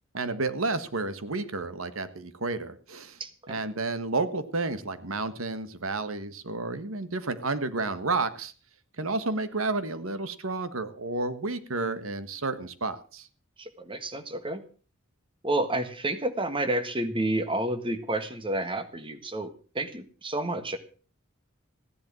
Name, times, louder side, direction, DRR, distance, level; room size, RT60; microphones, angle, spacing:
voice 1, 0.1-3.2 3.5-8.5 9.0-13.3, right 3 dB, 85° right, 12 dB, 1.5 m, -31 dB
voice 2, 3.2-3.6 13.6-14.6 15.4-19.5 19.7-20.8, right 1 dB, 25° right, 9 dB, 1.6 m, -30 dB
15.5 x 11.0 x 6.3 m, 0.39 s
head